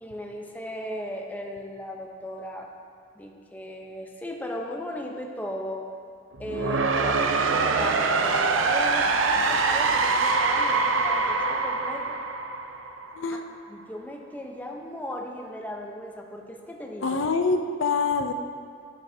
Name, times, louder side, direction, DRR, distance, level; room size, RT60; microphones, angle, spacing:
voice 1, 0.0-2.7 3.1-5.9 6.4-12.0 13.3-13.4 13.7-17.2, left 1 dB, 10° left, 1 dB, 0.8 m, -36 dB
sound 1, 6.3-13.3, right 4 dB, 85° right, 0.7 m, -24 dB
voice 2, 13.1-13.5 17.0-18.3, left 4 dB, 80° left, 6 dB, 0.6 m, -25 dB
17.5 x 7.8 x 2.8 m, 2.2 s
head